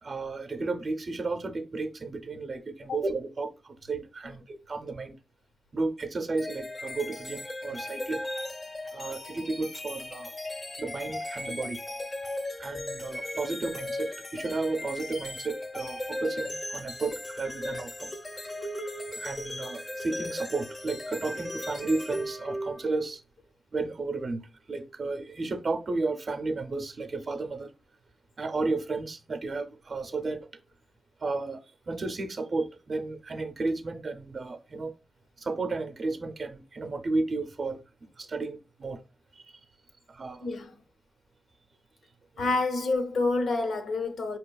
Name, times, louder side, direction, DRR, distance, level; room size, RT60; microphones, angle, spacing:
voice 1, 0.0-5.2 5.7-8.2 8.9-10.3 10.8-11.8 12.6-18.1 19.2-23.2 23.7-24.4 24.7-27.7 28.4-30.6 31.2-34.9 35.4-39.0 39.3-39.6 40.1-40.5 42.3-42.4, right 3 dB, 45° right, 0.5 m, -33 dB
sound 1, 6.4-23.0, left 1 dB, 20° left, 0.4 m, -37 dB
voice 2, 40.4-40.7 42.4-44.4, left 3 dB, 70° left, 0.6 m, -28 dB
5.0 x 2.8 x 2.3 m
wide cardioid pair, 145°, 0 cm